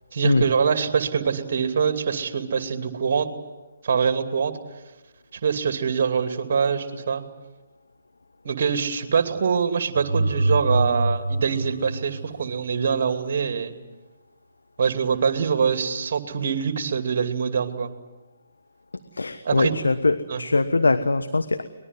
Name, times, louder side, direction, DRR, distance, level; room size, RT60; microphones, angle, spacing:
voice 1, 0.1-3.3 3.8-4.5 5.3-7.2 8.4-13.7 14.8-17.9 19.4-19.7 20.3-20.4, right 6 dB, 55° right, 8 dB, 2.6 m, -24 dB
sound 1, 9.9-12.8, right 2 dB, 85° right, 0.9 m, -25 dB
voice 2, 19.1-21.6, left 3 dB, 80° left, 10 dB, 1.2 m, -22 dB
23.5 x 20.0 x 9.6 m, 1.1 s
figure-of-eight pair, 140°, 0 cm